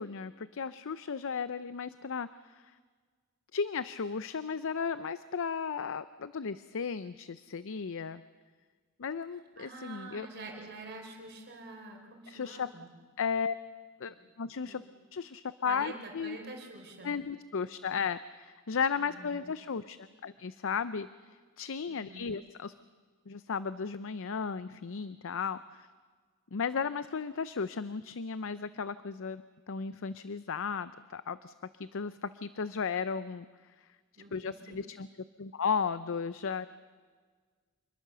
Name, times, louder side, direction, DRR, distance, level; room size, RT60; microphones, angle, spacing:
voice 1, 0.0-2.5 3.5-8.2 9.0-10.3 12.3-12.7 13.2-13.6 14.0-14.8 15.1-16.4 17.0-21.1 21.6-22.7 23.3-25.9 26.5-29.4 29.7-33.5 34.3-35.1 35.4-36.7, left 6 dB, 65° left, 14 dB, 0.6 m, -35 dB
voice 2, 9.6-12.9 14.1-14.2 14.7-14.8 15.6-17.1 19.0-19.4 21.9-22.3 34.2-34.8, right 2 dB, 50° right, 2 dB, 4.5 m, -47 dB
27.0 x 21.0 x 6.9 m, 1.5 s
head